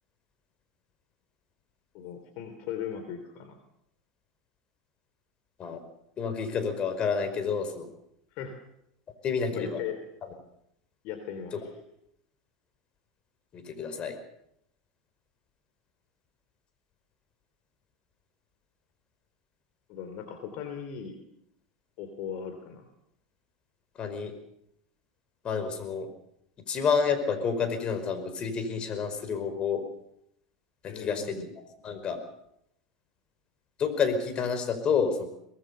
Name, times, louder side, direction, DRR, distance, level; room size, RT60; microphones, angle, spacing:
voice 1, 1.9-3.6 8.3-8.5 9.5-10.0 11.0-11.7 19.9-21.2 22.0-22.8 30.8-31.5, left 8 dB, 55° left, 7 dB, 3.4 m, -38 dB
voice 2, 6.2-7.9 9.2-9.8 13.5-14.2 24.0-24.3 25.4-26.1 26.7-29.8 30.8-31.4 31.8-32.2 33.8-35.3, left 6 dB, 35° left, 8 dB, 5.0 m, -29 dB
23.5 x 19.5 x 6.9 m, 0.79 s
hypercardioid pair, 85°, 3 cm